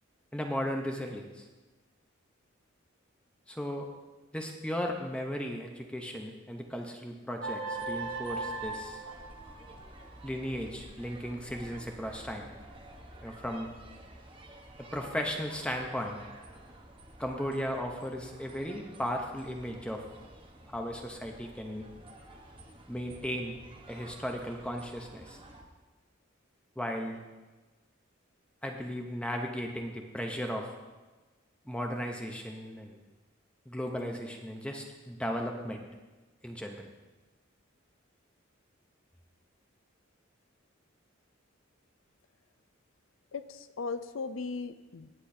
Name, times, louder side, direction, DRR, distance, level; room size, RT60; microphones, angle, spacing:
voice 1, 0.3-1.5 3.5-3.9 4.3-9.0 10.2-12.5 13.2-13.7 14.9-16.2 17.2-20.0 20.7-21.9 22.9-23.6 23.9-25.4 26.8-27.2 28.6-30.7 31.7-33.0 33.7-35.8 36.4-36.9, equal, 5° left, 2 dB, 0.7 m, -36 dB
sound 1, 7.4-10.0, right 3 dB, 65° right, 1.0 m, -37 dB
sound 2, 7.7-25.6, right 1 dB, 25° right, 1.0 m, -51 dB
voice 2, 43.3-45.1, left 4 dB, 70° left, 13 dB, 0.5 m, -37 dB
17.0 x 8.0 x 2.7 m, 1.2 s
head